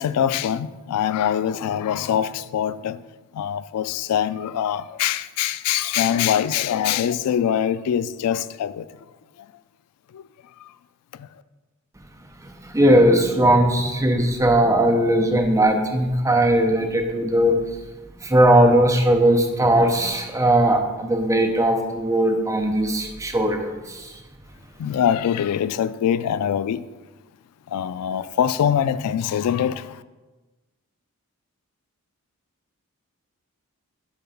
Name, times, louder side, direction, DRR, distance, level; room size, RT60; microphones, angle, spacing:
voice 1, 0.0-3.0 3.3-8.9 10.1-10.2 24.8-26.8 27.7-30.0, left 9 dB, 90° left, 0.3 m, -23 dB
voice 2, 12.4-17.6 18.2-24.1, right 1 dB, 15° right, 0.7 m, -19 dB
7.3 x 3.8 x 5.7 m
head